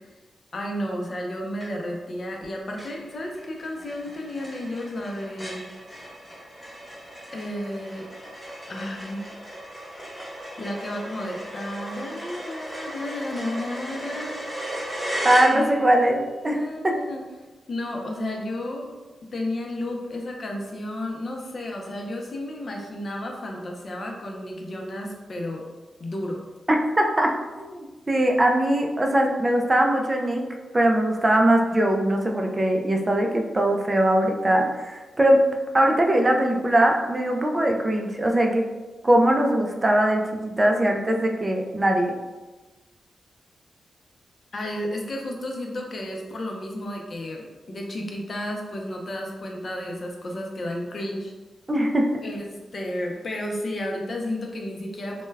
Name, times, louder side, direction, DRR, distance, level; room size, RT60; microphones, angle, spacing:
voice 1, 0.5-5.7 7.3-8.1 8.7-9.3 10.6-14.4 15.5-15.7 16.5-17.2 17.7-18.9 19.3-25.7 26.0-26.4 44.5-51.3 52.2-55.3, left 1 dB, 50° left, 1 dB, 0.5 m, -32 dB
sound 1, 1.6-2.0 2.4-2.5 2.8-16.0, equal, 10° left, 1.0 m, -36 dB
voice 2, 15.2-16.6 26.7-27.3 27.6-30.4 30.7-35.4 35.7-38.6 39.0-42.1 51.7-52.2, right 1 dB, 25° right, 2 dB, 0.4 m, -21 dB
2.2 x 2.1 x 3.2 m, 1.2 s
cardioid pair, 65°, 0 cm